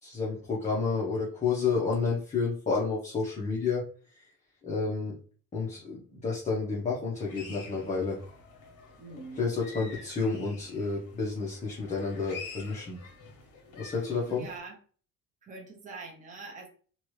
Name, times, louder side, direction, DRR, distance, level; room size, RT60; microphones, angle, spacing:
voice 1, 0.0-3.8 4.2-4.3 4.6-5.1 5.5-8.2 9.4-13.0 13.8-14.5, left 4 dB, 20° left, -5 dB, 0.8 m, -30 dB
sound 1, 7.2-14.6, left 5 dB, 60° left, 1.4 m, -48 dB
voice 2, 9.0-9.5 9.9-10.1 14.3-14.8 15.4-16.7, right 3 dB, 20° right, -1 dB, 0.7 m, -44 dB
2.9 x 2.5 x 3.1 m, 0.42 s
cardioid pair, 160°, 35 cm